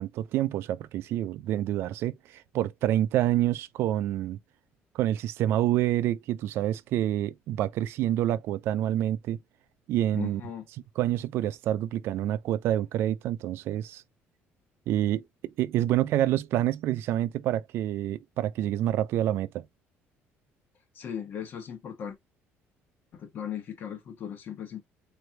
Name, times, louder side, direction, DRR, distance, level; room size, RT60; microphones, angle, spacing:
voice 1, 0.0-4.4 4.9-9.4 9.9-10.4 11.0-14.0 14.9-19.7, right 12 dB, 60° right, 0.4 m, -27 dB
voice 2, 10.1-10.7 20.9-22.2 23.1-24.8, left 9 dB, 45° left, 1.3 m, -37 dB
4.3 x 3.1 x 2.6 m
cardioid pair, 165°, 5 cm